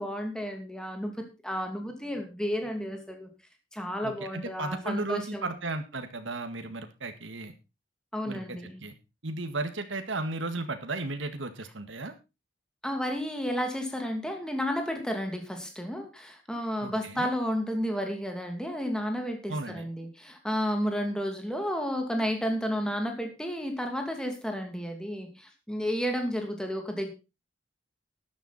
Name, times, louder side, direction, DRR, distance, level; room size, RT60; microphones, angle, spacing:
voice 1, 0.0-3.3 3.7-5.5 8.1-8.8 12.8-27.1, equal, 5° left, 4 dB, 2.6 m, -32 dB
voice 2, 4.0-7.5 8.3-8.9 9.2-12.1 16.8-17.3 19.5-19.9, right 2 dB, 80° right, 7 dB, 1.8 m, -35 dB
13.0 x 10.5 x 4.2 m, 0.28 s
head